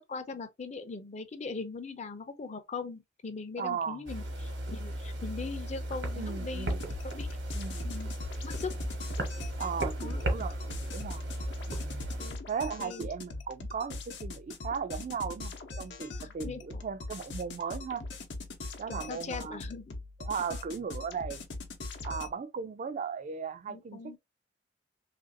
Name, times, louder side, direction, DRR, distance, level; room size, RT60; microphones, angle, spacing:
voice 1, 0.0-6.8 7.1-7.3 7.8-8.1 8.4-8.7 10.0-10.3 12.2-12.4 12.8-13.1 16.2-16.8 18.9-20.0 23.7-24.2, left 4 dB, 40° left, 0.5 m, -40 dB
voice 2, 3.6-4.0 6.2-7.0 7.5-7.9 9.6-11.3 11.7-12.0 12.5-18.0 18.8-19.6 20.2-21.4 22.0-24.2, right 6 dB, 45° right, 0.3 m, -37 dB
sound 1, 4.1-12.3, right 1 dB, 85° right, 1.0 m, -36 dB
sound 2, 6.6-22.3, left 2 dB, 80° left, 0.7 m, -42 dB
3.1 x 2.5 x 2.5 m
head